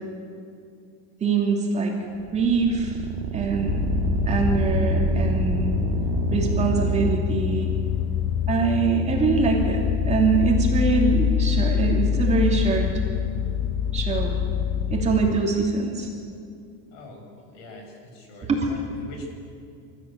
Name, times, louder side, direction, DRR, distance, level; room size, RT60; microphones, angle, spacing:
voice 1, 1.2-1.9 2.3-3.0 3.3-3.8 4.3-5.7 6.3-7.7 8.5-13.0 13.9-14.4 14.9-16.1 18.5-18.6, right 4 dB, 20° right, -1 dB, 2.8 m, -23 dB
sound 1, 2.1-7.2, right 8 dB, 45° right, 1.8 m, -28 dB
sound 2, 3.7-15.4, left 9 dB, 35° left, 0.8 m, -25 dB
voice 2, 16.9-19.3, left 2 dB, 60° left, 2 dB, 6.0 m, -43 dB
26.5 x 14.0 x 8.6 m, 2.4 s
cardioid pair, 165°, 32 cm